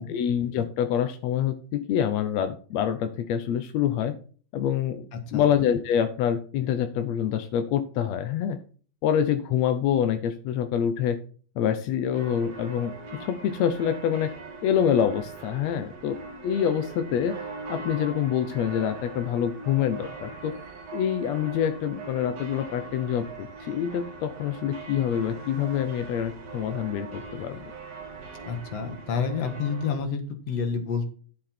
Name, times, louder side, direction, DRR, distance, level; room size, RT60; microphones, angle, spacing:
voice 1, 0.0-4.1 4.5-5.0 5.3-8.6 9.0-11.2 11.5-14.3 14.6-17.4 17.7-20.6 20.9-27.6, left 9 dB, 70° left, 9 dB, 1.7 m, -26 dB
voice 2, 5.1-5.4 28.5-31.1, left 5 dB, 55° left, 8 dB, 2.3 m, -29 dB
sound 1, 12.1-30.0, right 4 dB, 55° right, 2.6 m, -41 dB
12.0 x 6.7 x 4.4 m, 0.41 s
omnidirectional pair, 3.9 m